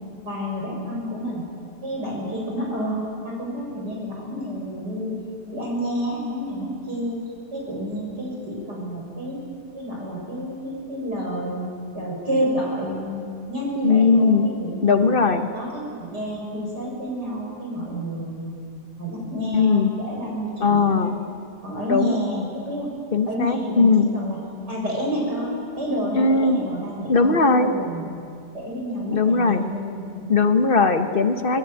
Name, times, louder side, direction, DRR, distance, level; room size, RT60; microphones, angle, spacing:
voice 1, 0.1-1.4 1.8-5.1 5.5-7.2 7.5-9.4 9.7-11.7 11.9-15.2 15.5-18.5 19.0-21.3 21.6-22.9 23.3-24.4 24.7-28.0 28.5-30.5, equal, 80° right, -2 dB, 7.3 m, -29 dB
voice 2, 13.8-14.5 14.8-15.5 19.5-19.9 20.6-21.1 21.9-22.1 23.1-24.1 26.1-26.6 27.1-27.7 29.1-29.7 30.3-31.6, left 4 dB, 35° left, 7 dB, 1.4 m, -18 dB
25.5 x 19.5 x 9.3 m, 2.4 s
omnidirectional pair, 1.8 m